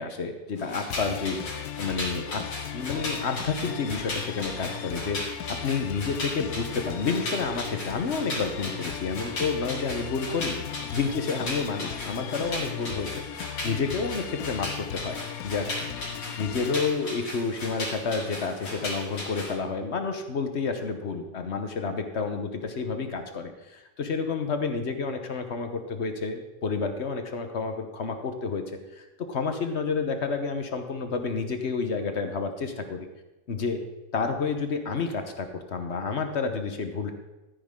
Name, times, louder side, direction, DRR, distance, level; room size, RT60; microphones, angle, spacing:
voice 1, 0.0-2.4 2.7-10.6 10.9-15.2 15.4-16.0 16.4-28.6 28.9-33.1 33.5-33.8 34.1-37.1, left 4 dB, 45° left, 6 dB, 1.1 m, -30 dB
sound 1, 0.6-19.5, left 1 dB, 90° left, 3.6 m, -37 dB
sound 2, 0.9-16.9, left 11 dB, 70° left, 0.9 m, -38 dB
13.5 x 9.6 x 3.7 m, 1.0 s
omnidirectional pair, 1.9 m